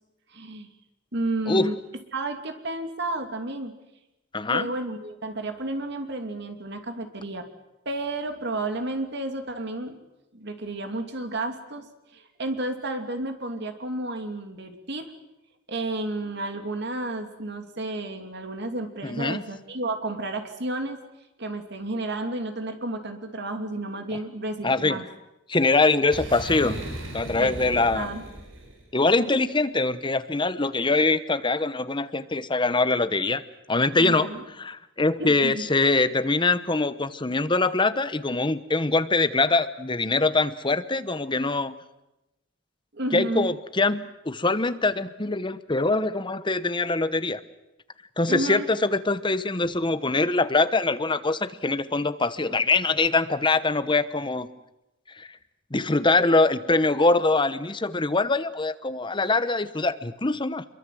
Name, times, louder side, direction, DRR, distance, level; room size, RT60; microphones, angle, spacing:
voice 1, 0.3-0.7 1.1-1.8 2.1-3.7 4.5-7.5 7.8-10.0 10.3-11.9 12.1-15.1 15.7-21.0 21.4-25.1 27.4-27.5 27.9-28.2 34.0-34.5 35.2-35.7 42.9-43.5 48.3-48.7, right 2 dB, 55° right, 6 dB, 2.8 m, -31 dB
voice 2, 4.3-4.7 19.0-19.4 24.6-25.0 25.5-26.8 27.1-28.1 28.9-33.4 33.7-34.3 34.6-41.7 43.1-47.4 48.2-54.5 55.2-55.3 55.7-60.6, left 3 dB, 25° left, 12 dB, 1.0 m, -23 dB
Boom, 26.1-28.8, right 1 dB, 75° right, 6.4 m, -36 dB
26.0 x 23.0 x 7.7 m, 0.94 s
head